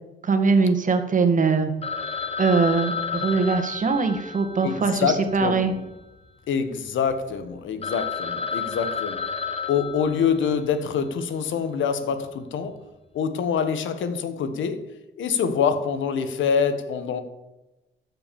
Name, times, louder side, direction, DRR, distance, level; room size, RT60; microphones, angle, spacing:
voice 1, 0.2-1.7 2.4-5.7, right 4 dB, 40° right, 7 dB, 1.9 m, -21 dB
Telephone, 1.8-6.2 6.4-6.5 7.1-7.2 7.5-7.6 7.8-10.8, left 5 dB, 30° left, 1.3 m, -32 dB
voice 2, 4.6-5.8 6.5-9.2 9.7-12.8 13.1-14.9 15.2-17.2, left 6 dB, 75° left, 10 dB, 1.4 m, -25 dB
13.0 x 5.9 x 7.0 m, 1.0 s
cardioid pair, 90°, 20 cm